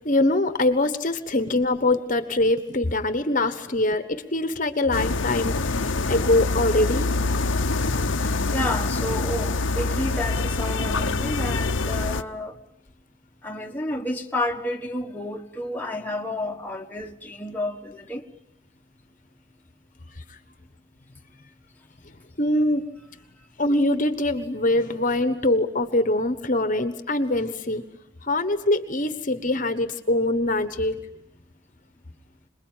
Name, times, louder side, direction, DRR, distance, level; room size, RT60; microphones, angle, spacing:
voice 1, 0.0-5.5 6.1-7.1 22.4-22.8 23.6-27.9 28.3-31.0, left 2 dB, 40° left, 1.3 m, -23 dB
sound 1, 4.9-12.2, left 3 dB, 70° left, 1.0 m, -25 dB
voice 2, 8.2-12.6 13.4-18.2, left 1 dB, 10° left, 1.5 m, -30 dB
27.5 x 21.0 x 9.1 m
head